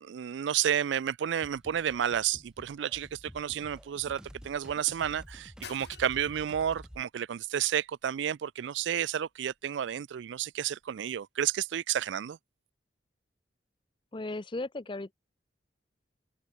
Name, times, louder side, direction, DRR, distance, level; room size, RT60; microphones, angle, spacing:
voice 1, 0.0-12.4, right 9 dB, 85° right, 0.4 m, -31 dB
sound 1, 0.8-10.9, left 7 dB, 65° left, 3.3 m, -57 dB
sound 2, 1.4-7.0, equal, 5° right, 3.6 m, -50 dB
voice 2, 14.1-15.1, left 2 dB, 25° left, 0.5 m, -36 dB
head